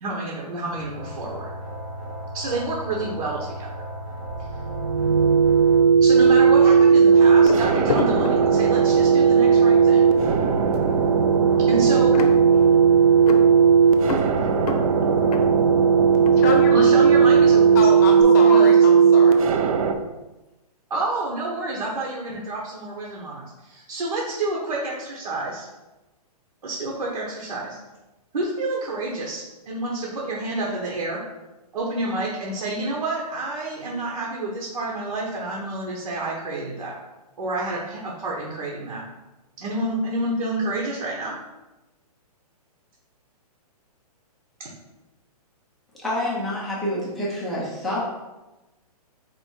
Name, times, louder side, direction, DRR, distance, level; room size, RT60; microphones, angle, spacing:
voice 1, 0.0-1.5 2.3-3.7 6.0-10.1 11.6-12.2 16.7-17.8 18.1-19.0 20.9-25.7 26.6-27.8 28.3-31.2 31.7-36.9 37.4-39.0 39.6-41.3 44.6-44.7, right 2 dB, 85° right, -4 dB, 1.1 m, -29 dB
sound 1, 0.7-17.8, right 1 dB, 30° right, 0.8 m, -35 dB
sound 2, 4.3-19.9, right 6 dB, 60° right, 0.5 m, -16 dB
sound 3, 7.4-9.0 9.7-9.9 10.2-17.3 17.6-18.2, left 4 dB, 70° left, 0.6 m, -31 dB
voice 2, 16.4-16.8 17.8-19.4, left 4 dB, 25° left, 1 dB, 0.7 m, -27 dB
voice 3, 46.0-48.0, left 1 dB, ahead, -8 dB, 0.3 m, -27 dB
4.3 x 2.7 x 4.5 m, 1.1 s
hypercardioid pair, 170°, 20 cm